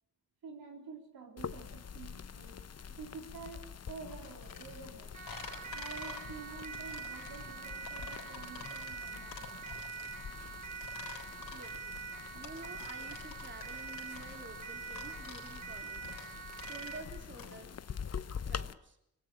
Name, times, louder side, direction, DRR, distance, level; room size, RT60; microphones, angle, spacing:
voice 1, 0.4-2.6 2.9-5.1 5.7-9.7, right 5 dB, 85° right, 1 dB, 3.7 m, -49 dB
sound 1, 1.4-18.7, left 7 dB, 45° left, 0.9 m, -46 dB
sound 2, 4.1-17.6, left 6 dB, 85° left, 4.0 m, -49 dB
Siren, 5.1-17.1, right 5 dB, 60° right, 5.2 m, -45 dB
voice 2, 11.5-12.0 12.3-16.1 16.6-17.8 18.4-19.0, right 3 dB, 35° right, 4 dB, 3.2 m, -50 dB
20.0 x 17.0 x 8.8 m, 0.78 s
cardioid pair, 50°, 34 cm